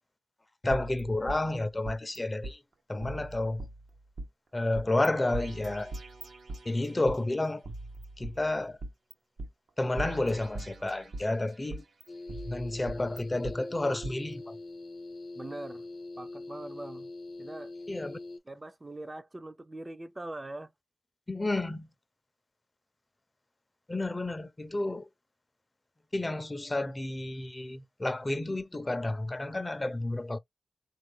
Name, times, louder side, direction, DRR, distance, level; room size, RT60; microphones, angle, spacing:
voice 1, 0.6-2.6 2.9-3.6 4.5-5.9 6.7-7.6 8.2-8.8 9.8-11.8 12.5-14.5 17.9-18.2 21.3-21.9 23.9-25.1 26.1-30.4, left 2 dB, 25° left, 0.5 m, -31 dB
sound 1, 0.7-2.2 2.4-2.5 3.0-4.3 4.7-5.1 5.3-7.2 7.6-9.1 9.4-9.5 10.0-11.3 11.7-13.6 14.0-14.1, right 2 dB, 80° right, 0.7 m, -41 dB
sound 2, 12.1-18.4, left 2 dB, 65° left, 0.7 m, -43 dB
voice 2, 15.3-15.9 16.2-17.1 17.4-17.7 18.4-20.7, right 2 dB, 25° right, 0.4 m, -42 dB
4.1 x 2.4 x 3.2 m
cardioid pair, 65°, 0 cm